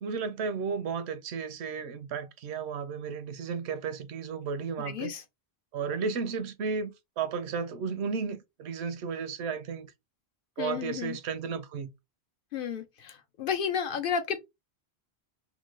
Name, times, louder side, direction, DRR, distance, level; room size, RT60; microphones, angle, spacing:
voice 1, 0.0-5.1 5.7-9.9 10.6-11.9, right 5 dB, 80° right, 0.8 m, -33 dB
voice 2, 4.8-5.2 10.6-11.2 12.5-14.4, left 7 dB, 60° left, 0.7 m, -32 dB
3.0 x 2.2 x 3.2 m
omnidirectional pair, 1.1 m